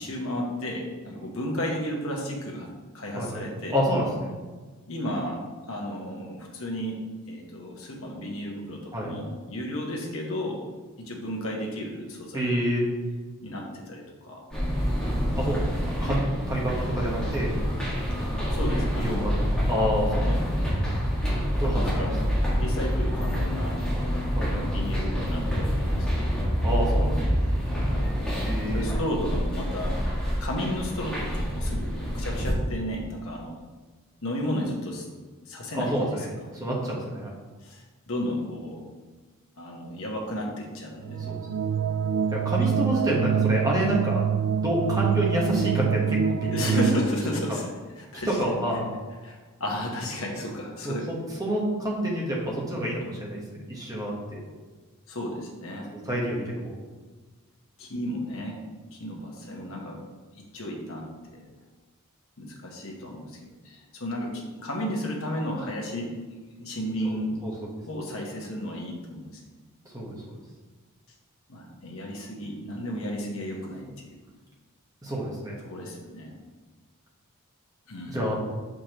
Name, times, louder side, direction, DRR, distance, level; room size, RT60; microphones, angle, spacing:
voice 1, 0.0-3.8 4.9-5.4 5.7-7.0 7.3-10.6 11.0-12.5 13.4-14.4 16.0-16.2 18.5-19.3 20.2-20.4 21.6-22.1 22.5-23.8 24.4-26.1 27.8-28.1 28.7-29.9 30.4-33.6 34.2-35.1 35.4-36.5 37.6-38.8 39.6-41.3 46.5-48.4 49.2-51.1 55.1-55.9 57.8-58.6 58.9-60.0 60.3-61.4 62.4-63.4 63.6-66.2 66.6-67.3 67.6-69.3 71.5-74.2 75.6-76.3 77.9-78.3, left 1 dB, 65° left, -1 dB, 1.3 m, -33 dB
voice 2, 3.7-4.4 8.9-9.1 12.3-12.8 15.4-17.6 19.0-20.3 21.6-22.1 24.4-24.9 26.6-27.2 28.4-28.8 35.7-36.3 36.5-37.3 41.0-41.6 42.3-44.2 44.6-46.8 47.5-47.6 48.2-48.9 50.8-54.4 56.0-56.7 67.0-67.2 67.4-67.5 69.9-70.1 75.0-75.6 78.0-78.4, equal, 15° right, -4 dB, 1.3 m, -28 dB
sound 1, 14.5-32.5, equal, 5° left, 1.8 m, -27 dB
sound 2, 41.0-47.1, right 7 dB, 70° right, 0.3 m, -25 dB
6.5 x 5.2 x 3.1 m, 1.3 s
head